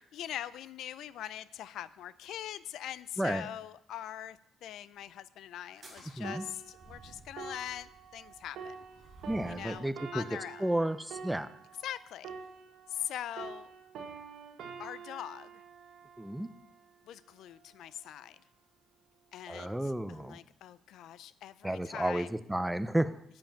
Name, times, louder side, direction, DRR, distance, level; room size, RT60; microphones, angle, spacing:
voice 1, 0.1-8.8 9.5-10.7 11.8-12.3 12.9-13.7 14.8-15.5 17.1-18.4 19.3-19.8 20.1-22.3, left 11 dB, 70° left, 17 dB, 0.3 m, -42 dB
sound 1, 5.6-9.9, right 2 dB, 25° right, 3.4 m, -55 dB
sound 2, 6.2-13.1 13.4-16.9 17.6-17.8, right 6 dB, 65° right, 1.3 m, -47 dB
voice 2, 9.3-10.2 10.6-11.5 16.2-16.5 19.5-20.4 21.6-23.2, right 1 dB, 5° right, 12 dB, 0.4 m, -32 dB
7.6 x 7.1 x 5.7 m, 0.77 s
cardioid pair, 140°, 0 cm